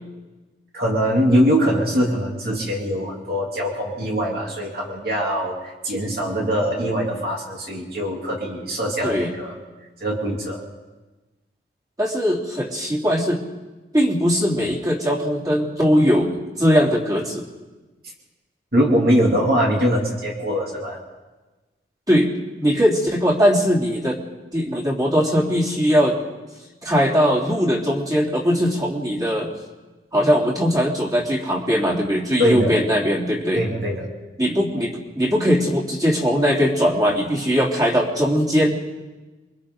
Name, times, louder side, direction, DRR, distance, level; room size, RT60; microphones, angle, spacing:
voice 1, 0.7-5.5 5.8-9.5 10.0-10.6 18.7-21.0 32.4-32.7 33.5-34.0, equal, 55° right, -3 dB, 3.2 m, -22 dB
voice 2, 12.0-13.4 13.9-17.5 22.1-24.2 24.5-26.2 26.8-29.5 30.1-33.6 34.4-38.8, equal, 20° right, -3 dB, 3.2 m, -20 dB
28.0 x 23.5 x 4.0 m, 1.2 s
head